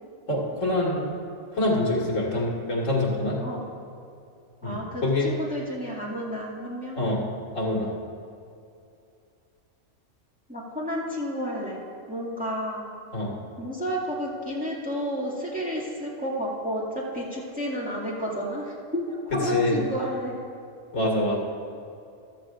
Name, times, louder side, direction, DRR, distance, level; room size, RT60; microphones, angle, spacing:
voice 1, 0.3-1.1 1.5-3.4 4.6-5.3 7.0-7.2 7.5-7.9 13.1-13.4 19.5-19.8 20.9-21.4, left 1 dB, 75° left, -3 dB, 2.4 m, -25 dB
voice 2, 4.6-7.0 10.5-11.8 12.1-12.8 13.6-20.3, equal, 5° right, -6 dB, 2.2 m, -31 dB
14.5 x 13.5 x 2.6 m, 2.6 s
omnidirectional pair, 1.3 m